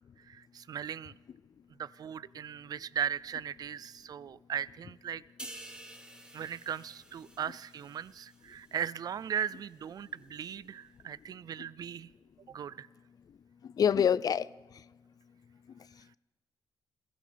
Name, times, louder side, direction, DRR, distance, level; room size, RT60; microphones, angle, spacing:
voice 1, 0.3-1.1 1.8-5.2 6.3-12.1 12.5-12.9, right 9 dB, 50° right, 0.4 m, -38 dB
sound 1, 5.4-8.9 9.3-9.5, right 1 dB, 10° right, 1.5 m, -50 dB
voice 2, 13.6-14.8 15.7-16.2, left 8 dB, 50° left, 0.4 m, -29 dB
21.5 x 15.5 x 3.4 m
cardioid pair, 90°, 8 cm